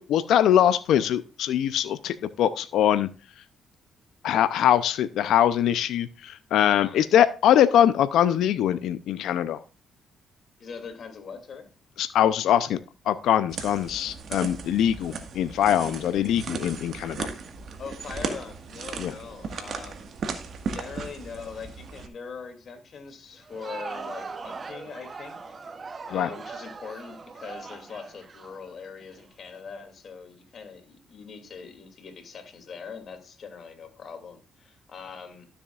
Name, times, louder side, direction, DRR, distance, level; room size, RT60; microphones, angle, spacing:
voice 1, 0.0-3.1 4.2-9.6 12.0-12.8 13.1-17.3 19.0-19.2 26.1-26.3, left 10 dB, 80° left, 0.6 m, -22 dB
voice 2, 10.6-11.7 17.8-20.1 20.7-25.6 26.1-35.5, left 5 dB, 55° left, 2.6 m, -42 dB
sound 1, 13.5-22.1, right 5 dB, 60° right, 1.6 m, -36 dB
Crowd, 23.3-29.2, right 4 dB, 35° right, 0.9 m, -40 dB
12.5 x 7.1 x 2.5 m
cardioid pair, 90°, 0 cm